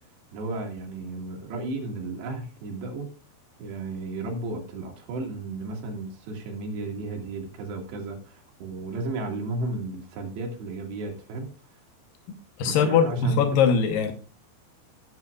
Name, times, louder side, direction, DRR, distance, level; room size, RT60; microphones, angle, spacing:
voice 1, 0.3-3.1 3.6-11.5 12.8-13.4, right 2 dB, 65° right, 2 dB, 3.8 m, -33 dB
voice 2, 12.6-14.1, left 6 dB, 90° left, 7 dB, 1.9 m, -21 dB
18.5 x 7.7 x 2.4 m, 0.33 s
omnidirectional pair, 5.6 m